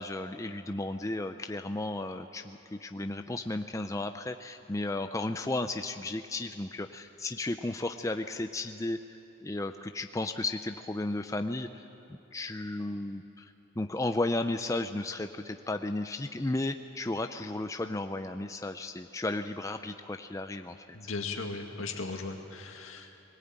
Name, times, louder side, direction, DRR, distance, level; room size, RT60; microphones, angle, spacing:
voice 1, 0.0-11.8 12.1-20.8, left 2 dB, 15° left, 7 dB, 0.5 m, -34 dB
voice 2, 20.9-23.2, left 3 dB, 75° left, 3 dB, 2.0 m, -37 dB
21.5 x 18.5 x 8.8 m, 2.9 s
head